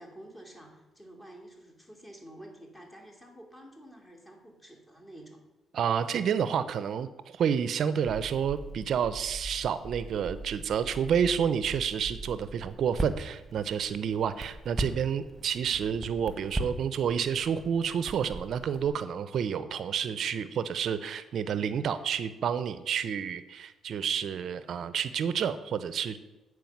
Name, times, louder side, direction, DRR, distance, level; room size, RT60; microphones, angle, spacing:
voice 1, 0.0-5.4, right 1 dB, 20° left, 1 dB, 2.5 m, -49 dB
voice 2, 5.7-7.1 7.4-26.2, right 7 dB, 65° right, 13 dB, 0.5 m, -29 dB
Crackle, 8.0-18.9, right 2 dB, 15° right, 1.5 m, -40 dB
9.2 x 4.7 x 7.1 m, 1.1 s
cardioid pair, 90°, 0 cm